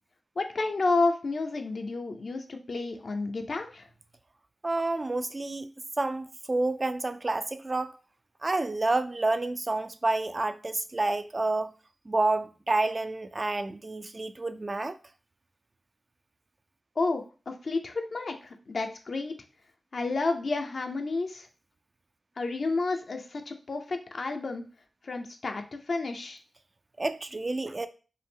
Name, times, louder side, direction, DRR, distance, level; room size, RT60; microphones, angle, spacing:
voice 1, 0.4-3.9 17.0-19.3 19.9-21.5 22.4-24.6 25.0-26.4, left 3 dB, 70° left, 0.6 m, -30 dB
voice 2, 4.6-5.7 6.0-7.9 8.4-11.7 12.1-15.0 27.0-27.9, right 2 dB, 40° right, 0.4 m, -29 dB
5.4 x 2.1 x 3.5 m
cardioid pair, 55°, 0 cm